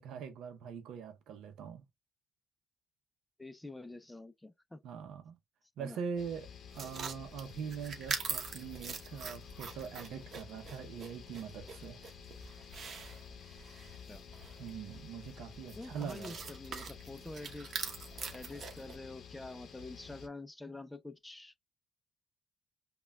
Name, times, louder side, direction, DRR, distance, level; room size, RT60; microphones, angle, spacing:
voice 1, 0.0-1.8 4.8-5.4 5.8-6.5 6.7-12.0 14.6-16.4, right 7 dB, 80° right, 0.6 m, -42 dB
voice 2, 3.4-4.8 5.8-6.0 14.1-14.3 15.8-17.7 18.3-21.6, left 2 dB, 10° left, 0.4 m, -47 dB
sound 1, 6.2-20.3, left 7 dB, 65° left, 0.6 m, -52 dB
sound 2, 6.7-19.0, right 5 dB, 55° right, 0.9 m, -44 dB
5.3 x 2.2 x 2.2 m
cardioid pair, 90°, 0 cm